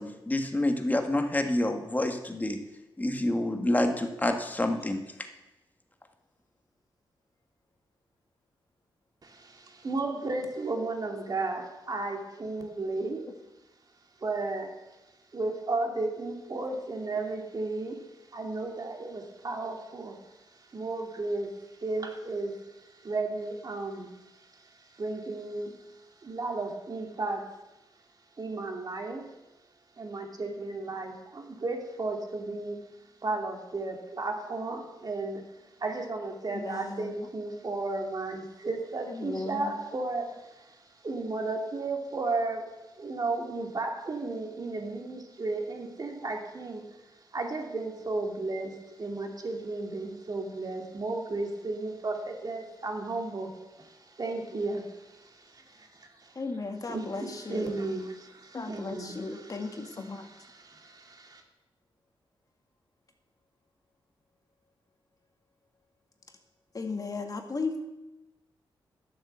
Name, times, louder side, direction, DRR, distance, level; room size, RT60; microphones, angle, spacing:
voice 1, 0.0-2.6 3.0-5.0, left 1 dB, 20° left, 5 dB, 1.6 m, -28 dB
voice 2, 9.2-13.2 14.2-14.7 15.3-18.0 18.3-27.4 28.4-29.3 30.0-32.8 33.2-35.4 35.8-42.6 43.0-46.8 47.3-56.4 56.9-61.4, right 3 dB, 45° right, 3 dB, 2.3 m, -34 dB
voice 3, 36.5-37.1 39.1-39.7 56.4-57.7 58.5-60.3 66.7-67.8, left 3 dB, 40° left, 4 dB, 1.9 m, -35 dB
11.5 x 7.9 x 7.0 m, 1.0 s
cardioid pair, 75°, 9 cm